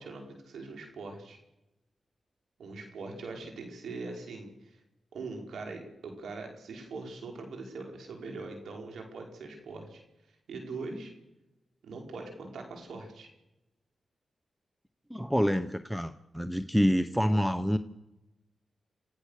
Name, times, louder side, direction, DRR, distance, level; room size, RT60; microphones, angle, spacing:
voice 1, 0.0-1.4 2.6-4.7 5.1-10.0 10.5-11.1 11.8-13.3, right 3 dB, 85° right, 2 dB, 5.0 m, -42 dB
voice 2, 15.1-17.8, equal, 5° right, 11 dB, 1.0 m, -27 dB
27.0 x 15.5 x 6.7 m, 0.94 s
cardioid pair, 55°, 0 cm